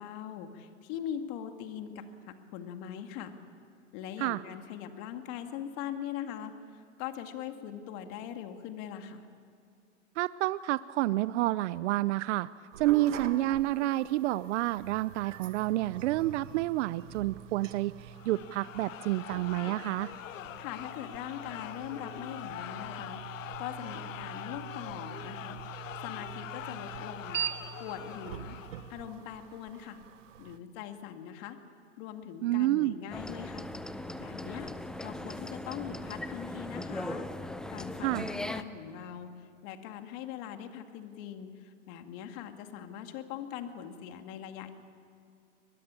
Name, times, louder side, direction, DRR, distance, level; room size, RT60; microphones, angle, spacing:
voice 1, 0.0-3.3 3.9-9.3 20.6-27.4 27.8-28.6 28.9-30.0 30.4-31.6 32.0-33.7 34.2-34.7 35.0-44.7, left 9 dB, 50° left, 6 dB, 2.2 m, -41 dB
voice 2, 10.2-12.5 12.8-20.1 32.4-33.0 38.0-38.3, right 16 dB, 65° right, 17 dB, 0.6 m, -29 dB
sound 1, 12.7-30.6, right 10 dB, 80° right, 1.4 m, -44 dB
sound 2, 18.1-29.1, left 13 dB, 85° left, 0.8 m, -43 dB
sound 3, 33.1-38.6, left 1 dB, ahead, 0.6 m, -39 dB
23.0 x 21.0 x 8.9 m, 2.5 s
hypercardioid pair, 125°, 38 cm